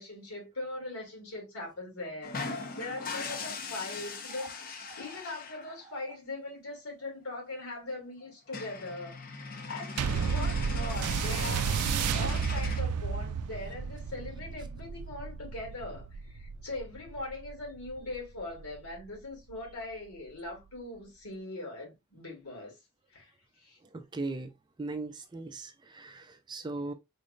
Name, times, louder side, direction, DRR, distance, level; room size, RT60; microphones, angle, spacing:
voice 1, 0.0-11.8 12.1-22.8 23.1-23.3 23.6-23.8, left 2 dB, 80° left, 2.3 m, -41 dB
sound 1, 2.2-5.9 7.4-7.5 7.8-7.9 8.2-8.3 8.5-12.8, left 4 dB, 40° left, 0.6 m, -39 dB
sound 2, 10.0-18.7 19.5-19.6, right 6 dB, 85° right, 0.4 m, -32 dB
voice 2, 23.9-24.5 24.8-26.9, right 3 dB, 20° right, 0.4 m, -38 dB
3.9 x 3.2 x 2.5 m
head